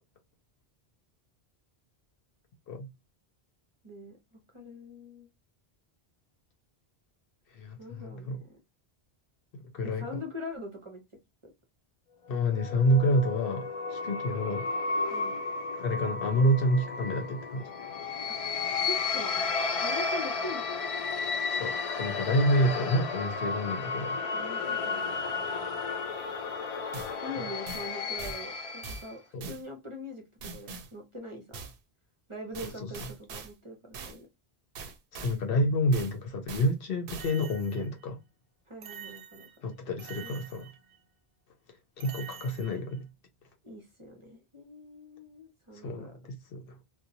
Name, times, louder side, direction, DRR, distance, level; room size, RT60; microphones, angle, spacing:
voice 1, 3.8-5.3 7.8-8.4 9.8-11.0 11.4-11.5 15.1-15.4 18.3-18.4 18.8-19.5 19.8-20.8 24.3-25.0 27.2-31.7 32.3-34.3 38.7-39.5 40.2-40.4 43.6-46.1, left 1 dB, 35° right, 0.7 m, -43 dB
voice 2, 7.5-8.4 9.7-10.2 12.3-14.7 15.8-17.7 21.5-24.2 29.3-29.5 32.8-32.9 35.1-38.2 39.6-40.7 42.0-43.0 45.7-46.8, equal, 65° left, 0.8 m, -28 dB
sound 1, 12.3-29.1, left 4 dB, 50° left, 0.4 m, -33 dB
sound 2, 26.9-27.2 27.7-27.9 28.2-28.4 28.8-29.1 29.4-29.6 30.4-30.9 31.5-31.8 32.5-33.5 33.9-34.2 34.8-35.4 35.9-36.2 36.5-36.7 37.1-38.0 38.8-39.6 40.0-41.0 42.0-42.9, right 4 dB, 70° right, 0.7 m, -43 dB
2.9 x 2.1 x 2.5 m
omnidirectional pair, 1.1 m